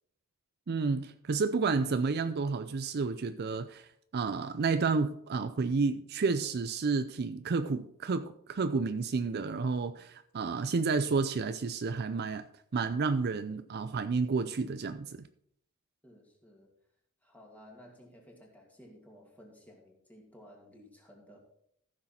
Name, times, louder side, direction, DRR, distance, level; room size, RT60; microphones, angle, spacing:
voice 1, 0.7-12.5 12.7-15.3, right 4 dB, 50° right, 0.5 m, -31 dB
voice 2, 16.0-16.7 17.2-21.4, equal, 5° left, 2.4 m, -55 dB
14.5 x 6.6 x 4.3 m
head